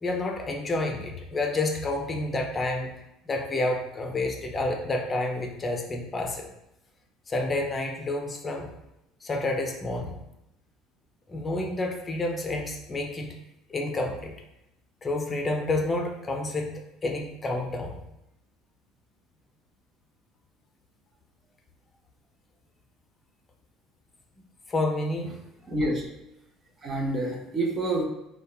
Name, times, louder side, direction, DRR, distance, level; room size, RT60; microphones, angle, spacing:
voice 1, 0.0-2.9 3.3-6.5 7.3-8.7 9.2-10.2 11.3-13.4 13.7-14.3 15.0-18.0 24.7-25.3 25.7-25.9, left 2 dB, 30° left, 2 dB, 0.4 m, -29 dB
voice 2, 25.7-26.0 26.8-28.0, right 1 dB, 40° right, 1 dB, 0.6 m, -27 dB
2.8 x 2.1 x 2.3 m, 0.86 s
supercardioid pair, 85°, 0 cm